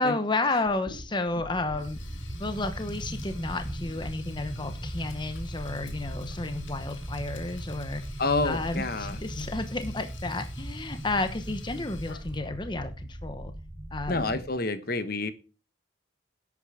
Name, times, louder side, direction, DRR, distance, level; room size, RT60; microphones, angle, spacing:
voice 1, 0.0-2.0 2.4-8.2 8.4-13.5 13.9-14.4, left 2 dB, 25° left, 8 dB, 0.9 m, -31 dB
Sink (filling or washing), 0.6-12.6, left 4 dB, 80° left, 2.3 m, -50 dB
sound 1, 1.3-14.5, right 1 dB, 15° right, 0.9 m, -38 dB
voice 2, 8.2-9.5 14.1-15.3, left 3 dB, 50° left, 11 dB, 1.2 m, -29 dB
11.0 x 8.5 x 4.9 m, 0.34 s
head